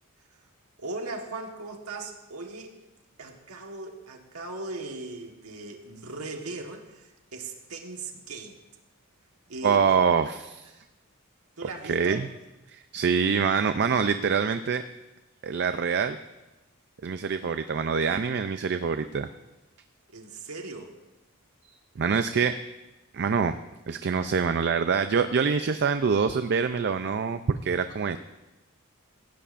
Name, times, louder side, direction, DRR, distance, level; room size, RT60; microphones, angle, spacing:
voice 1, 0.8-2.8 3.2-8.6 9.5-10.0 10.7-10.8 11.6-12.3 20.1-21.0, right 3 dB, 85° right, 2 dB, 1.4 m, -38 dB
voice 2, 9.6-10.7 11.8-12.3 12.7-14.8 15.4-16.2 17.0-19.3 22.0-22.5 23.1-23.5 23.9-28.2, right 6 dB, 50° right, 9 dB, 0.5 m, -25 dB
18.0 x 15.5 x 2.5 m, 1.0 s
head